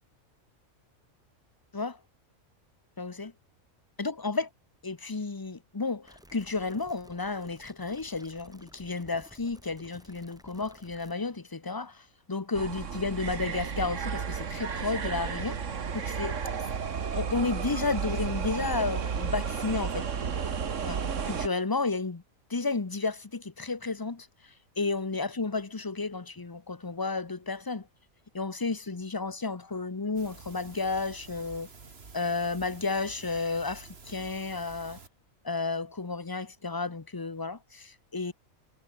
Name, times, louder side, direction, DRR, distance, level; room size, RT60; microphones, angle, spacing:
voice 1, 3.0-3.3 4.0-4.5 4.8-16.4 17.1-20.1 20.8-21.0 21.3-22.2 22.5-24.3 24.8-27.9 28.3-31.7 32.1-35.0 35.4-38.3, left 3 dB, 20° left, 0.7 m, -32 dB
sound 1, 6.0-11.1, equal, 5° right, 4.1 m, -55 dB
sound 2, 12.5-21.5, right 6 dB, 65° right, 1.8 m, -32 dB
sound 3, 30.2-35.1, right 4 dB, 45° right, 2.3 m, -50 dB
omnidirectional pair, 1.4 m